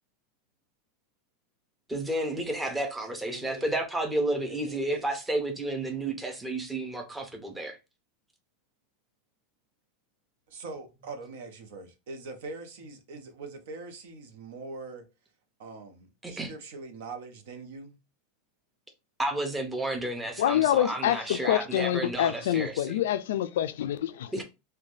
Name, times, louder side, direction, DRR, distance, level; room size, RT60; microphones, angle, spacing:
voice 1, 1.9-7.8 16.2-16.5 19.2-23.0 24.3-24.4, right 1 dB, 10° right, 0.6 m, -31 dB
voice 2, 3.3-3.7 4.5-5.2 10.5-15.1 15.6-18.0 24.4-24.5, right 3 dB, 75° right, 0.7 m, -43 dB
voice 3, 20.4-24.3, left 11 dB, 85° left, 0.3 m, -26 dB
3.2 x 2.2 x 2.5 m
supercardioid pair, 150°, 0 cm